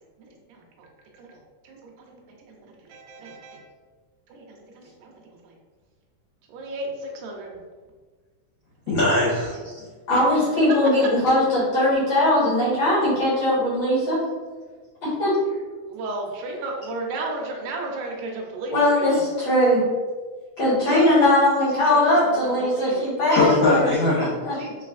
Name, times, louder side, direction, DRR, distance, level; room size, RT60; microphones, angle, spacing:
voice 1, 0.2-0.9 1.1-3.6 4.3-5.1 5.4-5.6 6.5-7.6 8.9-9.0 10.1-10.3 11.0-11.1 15.9-19.2 21.9-23.0 24.5-24.8, right 2 dB, 75° right, -1 dB, 1.9 m, -34 dB
voice 2, 8.9-9.9 20.9-21.0 23.3-24.3, left 2 dB, 80° left, -10 dB, 1.4 m, -21 dB
voice 3, 10.1-14.2 15.0-15.3 18.7-19.8 20.6-23.9 24.4-24.5, left 1 dB, 55° left, -9 dB, 1.4 m, -20 dB
5.4 x 3.3 x 2.4 m, 1.4 s
omnidirectional pair, 4.4 m